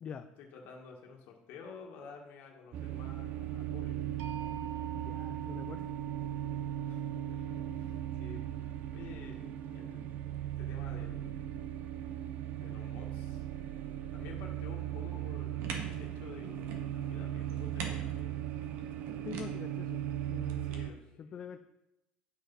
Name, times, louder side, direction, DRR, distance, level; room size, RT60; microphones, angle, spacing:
voice 1, 0.4-4.0 6.9-10.2 10.6-11.5 12.6-18.7 20.6-21.5, left 5 dB, 60° left, 1 dB, 1.6 m, -52 dB
sound 1, 2.7-20.9, right 11 dB, 45° right, 0.5 m, -38 dB
sound 2, 4.2-10.2, right 7 dB, 85° right, 1.2 m, -50 dB
voice 2, 5.0-5.9 19.2-20.0 20.3-20.8 21.2-21.6, left 7 dB, 30° left, 8 dB, 0.4 m, -45 dB
sound 3, 15.6-20.8, right 4 dB, 65° right, 1.6 m, -46 dB
9.6 x 6.1 x 5.4 m, 0.90 s
cardioid pair, 175°, 4 cm